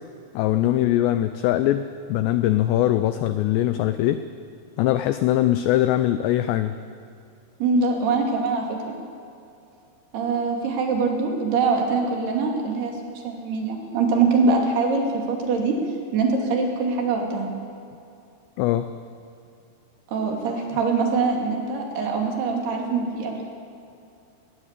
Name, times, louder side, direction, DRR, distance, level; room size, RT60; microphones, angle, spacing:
voice 1, 0.3-4.2 4.8-6.7 18.6-18.9, left 13 dB, 90° left, 11 dB, 2.4 m, -21 dB
voice 2, 7.6-9.0 10.1-15.8 16.1-17.5 20.1-23.4, right 4 dB, 55° right, 0 dB, 4.3 m, -23 dB
20.0 x 19.0 x 8.3 m, 2.6 s
omnidirectional pair, 5.8 m